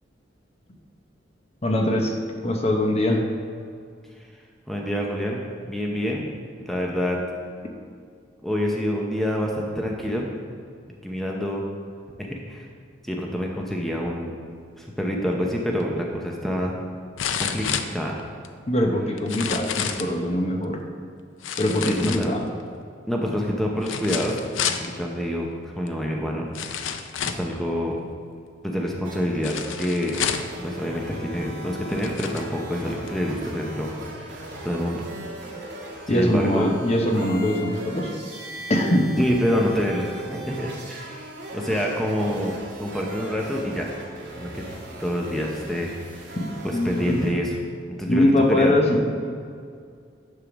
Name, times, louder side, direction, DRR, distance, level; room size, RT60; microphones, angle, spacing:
voice 1, 1.6-2.1 2.4-3.2 18.7-20.8 21.6-22.5 36.1-38.1 38.7-39.2 46.4-46.5 46.7-47.2 48.1-49.0, left 1 dB, 35° left, 2 dB, 0.8 m, -22 dB
voice 2, 4.7-6.3 6.7-7.2 8.4-10.3 11.0-11.6 12.2-12.6 13.0-14.3 14.8-16.7 17.4-17.7 17.9-18.2 21.8-22.3 23.1-24.4 24.8-26.4 27.2-28.0 28.6-30.2 30.6-35.0 36.1-36.7 39.2-43.9 44.4-44.5 45.0-46.3 46.6-47.5 48.0-48.7, equal, ahead, -1 dB, 0.7 m, -27 dB
sound 1, 15.8-15.9 17.2-18.5 19.2-20.1 21.4-22.6 23.8-24.9 25.9-26.0 26.5-27.5 29.4-30.6 31.4-31.5 31.9-32.5 33.1-33.2, left 7 dB, 90° left, 0.5 m, -29 dB
sound 2, 29.0-47.3, equal, 60° right, 1.9 m, -38 dB
9.9 x 3.8 x 6.1 m, 2.2 s
head